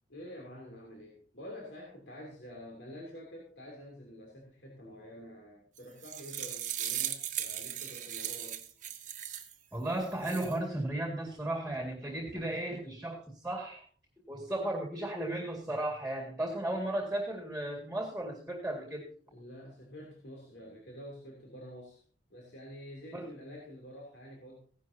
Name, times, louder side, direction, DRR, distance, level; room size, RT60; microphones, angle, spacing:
voice 1, 0.1-8.6 19.3-22.0 22.3-24.6, equal, 75° left, -2 dB, 3.1 m, -48 dB
sound 1, 5.8-9.5 10.0-10.5, right 11 dB, 45° right, 1.2 m, -38 dB
voice 2, 9.7-13.8 14.3-19.1 23.1-23.3, right 1 dB, 5° right, 1 dB, 2.1 m, -35 dB
16.0 x 11.0 x 2.8 m, 0.43 s
head